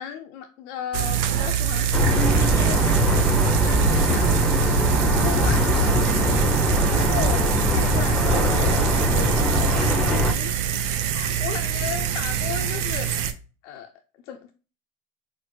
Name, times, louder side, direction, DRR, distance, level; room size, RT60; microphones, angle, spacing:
voice 1, 0.0-4.6 5.0-10.7 11.1-13.1 13.6-13.9 14.2-14.5, left 8 dB, 70° left, 4 dB, 0.5 m, -36 dB
sound 1, 0.9-13.3, right 9 dB, 70° right, 0.6 m, -25 dB
sound 2, 1.9-10.3, equal, ahead, 0.7 m, -21 dB
4.2 x 2.0 x 3.1 m, 0.35 s
hypercardioid pair, 80°, 37 cm